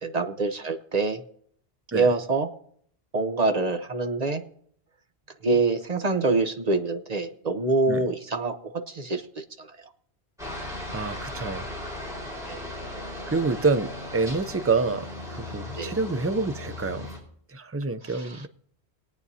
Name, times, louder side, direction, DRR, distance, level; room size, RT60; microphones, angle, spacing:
voice 1, 0.0-1.2 1.9-2.5 3.1-4.4 5.4-9.8 12.4-12.7 15.8-15.9 18.0-18.5, right 3 dB, 40° right, 0.8 m, -26 dB
Aircraft, 10.4-17.2, left 1 dB, 5° right, 4.4 m, -37 dB
voice 2, 10.9-11.7 13.3-17.1 17.5-18.5, right 4 dB, 25° right, 0.3 m, -27 dB
21.0 x 9.0 x 2.8 m
omnidirectional pair, 1.1 m